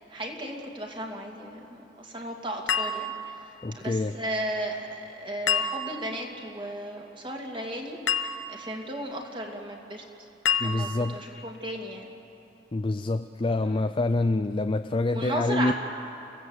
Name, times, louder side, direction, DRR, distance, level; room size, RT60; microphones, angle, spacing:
voice 1, 0.1-3.3 3.7-8.0 8.5-10.3 10.6-12.1 13.7-13.8 15.1-15.7, right 1 dB, 25° right, 0 dB, 2.6 m, -35 dB
sound 1, 2.7-3.6 5.5-6.2 8.1-8.8 10.4-11.2, left 6 dB, 85° left, 1.1 m, -29 dB
voice 2, 3.6-4.2 10.6-11.2 12.7-15.7, left 2 dB, 30° left, 9 dB, 0.5 m, -26 dB
29.5 x 16.5 x 8.0 m, 2.9 s
head